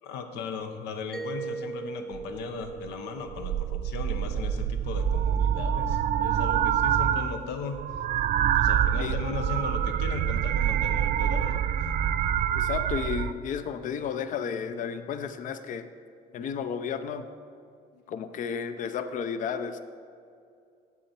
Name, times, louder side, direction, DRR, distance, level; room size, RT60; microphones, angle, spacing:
voice 1, 0.0-7.8 8.6-11.9 17.9-18.0, left 5 dB, 85° left, 6 dB, 0.9 m, -37 dB
Mallet percussion, 1.1-5.7, right 4 dB, ahead, 0.6 m, -41 dB
sound 1, 2.1-2.2 2.6-2.9 3.3-7.4 7.6-13.3, right 9 dB, 55° right, 0.4 m, -26 dB
voice 2, 12.5-15.9 16.3-17.3 18.1-19.8, left 7 dB, 50° left, 10 dB, 0.5 m, -32 dB
8.3 x 7.7 x 4.4 m, 2.4 s
cardioid pair, 110°, 17 cm